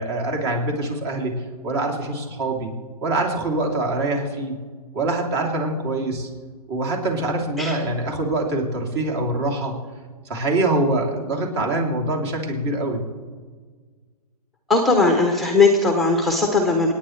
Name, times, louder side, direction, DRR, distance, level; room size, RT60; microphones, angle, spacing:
voice 1, 0.0-2.7 3.0-4.6 4.9-6.3 6.7-9.8 10.2-13.0, right 2 dB, 40° right, 1 dB, 3.1 m, -24 dB
voice 2, 14.7-16.9, left 3 dB, ahead, 3 dB, 0.9 m, -18 dB
26.5 x 9.6 x 3.3 m, 1.5 s
hypercardioid pair, 145°, 20 cm